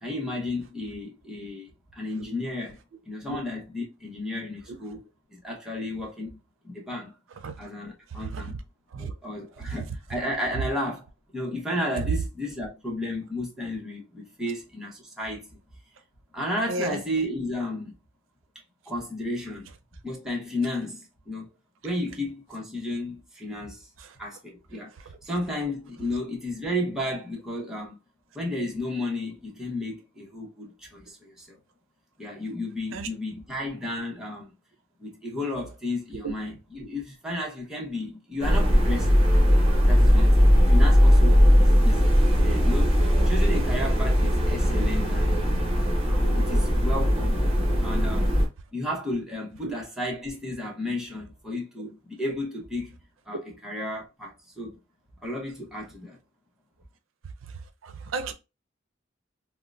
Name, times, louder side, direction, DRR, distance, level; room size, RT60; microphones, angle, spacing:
voice 1, 0.0-2.8 3.1-5.0 5.3-6.4 6.6-7.1 7.6-8.6 8.9-11.1 11.3-15.6 16.3-17.9 18.9-19.7 20.0-21.5 21.8-23.9 24.2-24.9 25.2-28.0 28.3-31.6 32.2-34.5 35.0-39.2 39.9-43.0 43.2-45.4 46.0-47.4 47.8-48.3 48.7-53.0 53.3-54.8 55.2-56.2, left 1 dB, 5° right, 0.9 m, -33 dB
sound 1, 38.4-48.5, equal, 30° right, 1.0 m, -19 dB
voice 2, 57.8-58.3, right 3 dB, 85° right, 0.4 m, -32 dB
3.7 x 2.1 x 2.4 m
head